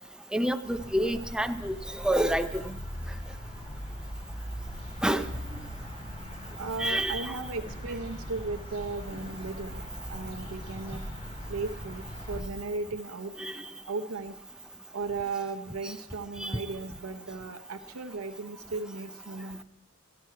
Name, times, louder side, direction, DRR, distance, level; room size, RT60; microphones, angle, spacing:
voice 1, 0.3-1.8 2.0-2.6 5.0-5.2 6.8-7.3 13.4-13.5 16.4-16.6, right 1 dB, 5° right, 9 dB, 0.5 m, -27 dB
sound 1, 0.6-12.4, equal, 30° left, 3.8 m, -40 dB
voice 2, 6.6-9.8 10.1-11.0 11.5-13.4 13.9-14.4 14.9-19.6, right 3 dB, 80° right, 7 dB, 0.9 m, -36 dB
17.0 x 12.5 x 4.6 m, 0.85 s
head